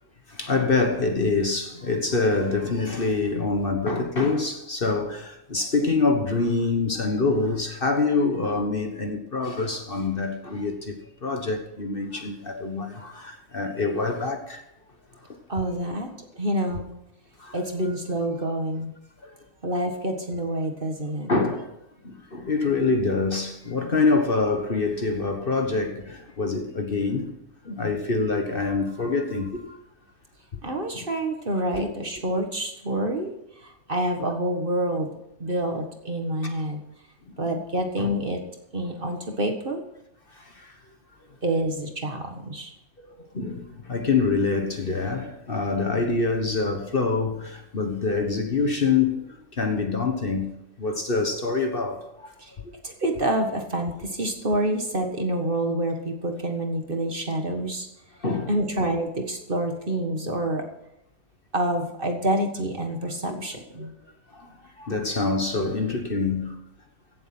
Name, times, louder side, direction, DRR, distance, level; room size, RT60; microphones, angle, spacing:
voice 1, 0.3-14.6 15.2-15.4 17.4-17.6 19.2-19.4 21.3-21.7 22.0-27.3 27.6-29.8 31.8-31.9 38.0-38.1 40.3-40.8 43.0-50.5 50.8-52.3 58.2-58.5 63.3-63.4 63.8-63.9 64.3-64.5 64.8-66.6, left 3 dB, 40° left, 1.4 m, -25 dB
voice 2, 15.5-16.1 16.4-16.9 17.5-18.9 19.6-21.3 30.6-35.1 35.4-36.8 37.4-38.4 38.7-39.8 41.4-42.7 52.4-52.5 52.8-57.9 58.5-60.7 61.5-63.9, right 1 dB, 40° right, 1.7 m, -27 dB
16.5 x 7.5 x 6.0 m
omnidirectional pair, 1.5 m